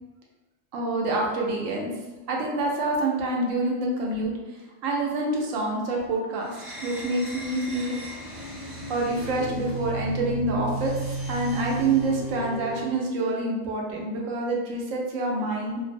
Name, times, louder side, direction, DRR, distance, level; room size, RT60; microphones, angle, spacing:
voice 1, 0.7-1.9 2.3-4.3 4.8-8.0 8.9-11.0 11.3-15.8, right 2 dB, 90° right, -1 dB, 1.0 m, -27 dB
sound 1, 6.4-13.1, right 2 dB, ahead, 0.5 m, -34 dB
2.9 x 2.0 x 2.5 m, 1.2 s
omnidirectional pair, 1.3 m